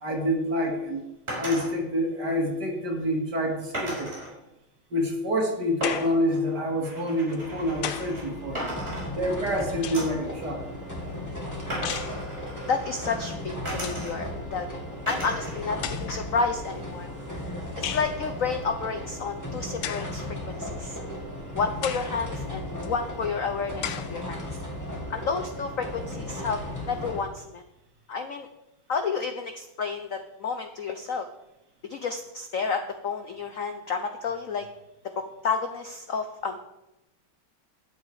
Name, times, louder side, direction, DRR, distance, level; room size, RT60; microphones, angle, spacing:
voice 1, 0.0-1.0 1.4-4.1 4.9-8.6 9.1-10.6, equal, 50° right, 1 dB, 2.6 m, -27 dB
sound 1, 1.3-1.7 3.7-4.3 5.8-8.3 8.5-9.5 9.9-10.3 11.7-13.2 13.6-14.4 15.1-15.6 15.9-16.7, right 1 dB, 30° right, 5.4 m, -36 dB
sound 2, 5.8-6.2 7.3-8.2 9.3-10.2 11.8-12.2 13.3-13.4 13.7-14.1 15.1-15.2 15.8-16.3 17.8-18.2 19.8-20.2 20.8-20.9 21.8-22.2 22.8-22.9 23.8-24.2, left 11 dB, 80° left, 1.6 m, -35 dB
sound 3, 7.4-27.2, left 1 dB, 10° left, 2.4 m, -36 dB
voice 2, 12.6-14.6 15.1-17.4 17.8-21.0 21.5-24.6 25.1-26.6 26.8-27.6 28.1-28.5 28.9-31.3 31.9-34.6 35.4-36.6, left 5 dB, 65° left, 7 dB, 0.8 m, -30 dB
12.5 x 9.1 x 4.9 m, 0.90 s
omnidirectional pair, 2.3 m